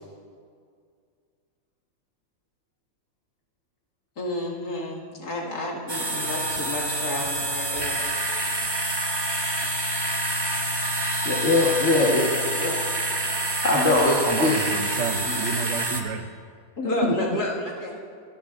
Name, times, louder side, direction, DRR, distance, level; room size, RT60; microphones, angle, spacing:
voice 1, 4.2-8.0 16.8-18.0, left 1 dB, 55° left, -4 dB, 2.5 m, -30 dB
sound 1, 5.9-16.0, right 1 dB, 20° right, 0.7 m, -27 dB
voice 2, 11.2-12.8 13.6-14.5 17.0-17.1, left 2 dB, 40° left, -4 dB, 1.5 m, -21 dB
voice 3, 14.3-16.3, right 8 dB, 85° right, 9 dB, 0.6 m, -30 dB
24.5 x 11.0 x 2.5 m, 2.2 s
omnidirectional pair, 2.1 m